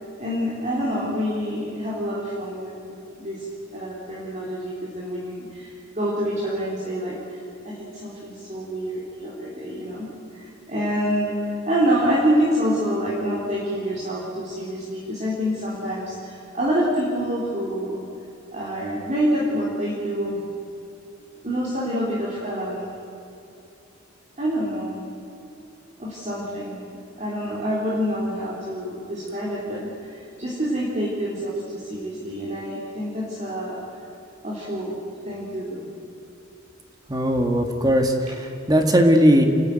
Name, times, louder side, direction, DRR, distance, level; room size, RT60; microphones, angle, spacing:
voice 1, 0.2-7.4 7.6-18.0 18.5-20.4 21.4-22.9 24.4-25.0 26.0-26.8 27.2-33.8 34.4-35.0 35.2-35.9, equal, 35° right, -7 dB, 3.8 m, -27 dB
voice 2, 37.1-39.4, equal, 20° right, 4 dB, 1.9 m, -18 dB
29.0 x 12.5 x 9.2 m, 2.8 s
head